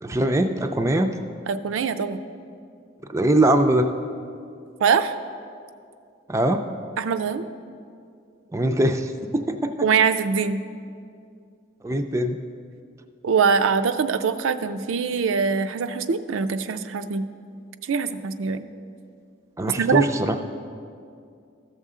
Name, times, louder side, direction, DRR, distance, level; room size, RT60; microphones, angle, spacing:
voice 1, 0.0-1.1 3.1-3.9 6.3-6.6 8.5-9.9 11.8-12.4 19.6-20.4, right 1 dB, 15° right, 6 dB, 0.4 m, -22 dB
voice 2, 1.5-2.2 4.8-5.1 7.0-7.4 9.8-10.6 13.2-17.3 17.9-18.7 19.8-20.1, right 5 dB, 90° right, 9 dB, 0.4 m, -23 dB
14.0 x 6.6 x 3.7 m, 2.4 s
head